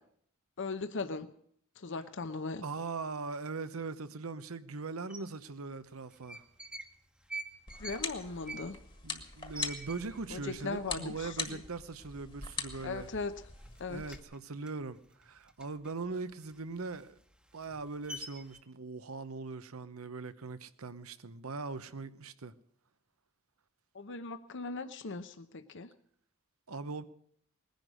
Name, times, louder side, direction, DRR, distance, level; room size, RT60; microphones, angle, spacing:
voice 1, 0.6-1.3 1.8-2.6 7.8-8.8 10.3-11.6 12.8-13.4 13.8-14.2 23.9-25.9, left 3 dB, 60° left, 0.8 m, -38 dB
voice 2, 2.6-6.4 9.0-13.1 13.9-17.1 17.5-22.5 26.7-27.0, right 4 dB, 90° right, 0.9 m, -40 dB
sound 1, 5.1-5.2 6.1-6.9 7.2-10.4 10.8-10.9 11.1-11.6 12.0-12.2 12.5-13.3 13.6-15.9 16.3-18.6, right 2 dB, 5° right, 1.1 m, -45 dB
sound 2, 7.7-14.2, left 4 dB, 25° left, 1.6 m, -43 dB
20.0 x 10.5 x 6.3 m
head